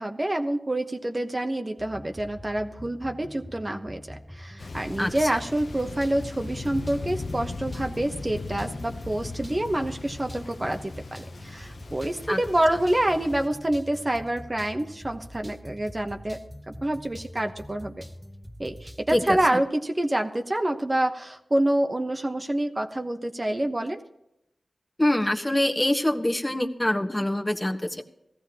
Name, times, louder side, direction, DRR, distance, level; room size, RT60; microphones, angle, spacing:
voice 1, 0.0-18.0 18.6-24.0, right 1 dB, 30° right, 5 dB, 1.0 m, -27 dB
sound 1, 1.8-19.5, equal, 5° right, 1.0 m, -44 dB
Thunder, 4.6-13.5, left 3 dB, 75° left, 0.8 m, -39 dB
voice 2, 5.0-5.3 12.3-12.4 19.1-19.6 25.0-28.0, left 1 dB, 20° left, 3 dB, 1.4 m, -25 dB
17.5 x 14.5 x 2.9 m, 0.84 s
cardioid pair, 40°, 0 cm